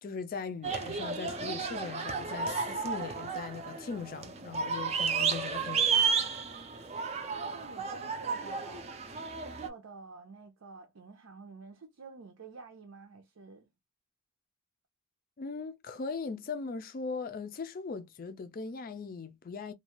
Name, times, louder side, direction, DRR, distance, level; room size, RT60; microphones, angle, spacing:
voice 1, 0.0-5.8 15.4-19.7, left 4 dB, 45° left, 0.4 m, -39 dB
sound 1, 0.6-9.7, right 5 dB, 30° right, 0.4 m, -32 dB
voice 2, 5.6-5.9 7.3-8.9 9.4-13.7, right 4 dB, 80° right, 0.6 m, -49 dB
2.5 x 2.2 x 2.9 m
head